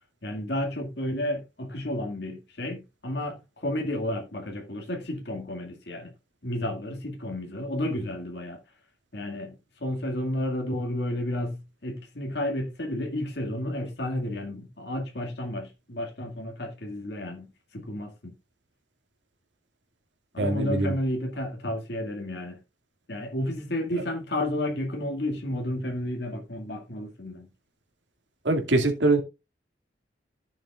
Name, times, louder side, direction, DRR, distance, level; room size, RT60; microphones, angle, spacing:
voice 1, 0.2-6.1 6.4-8.6 9.1-18.3 20.3-22.6 23.1-27.5, left 1 dB, 65° left, 2.2 m, -32 dB
voice 2, 20.4-20.9 28.4-29.2, right 2 dB, 90° right, 2.2 m, -23 dB
14.5 x 7.2 x 2.4 m
head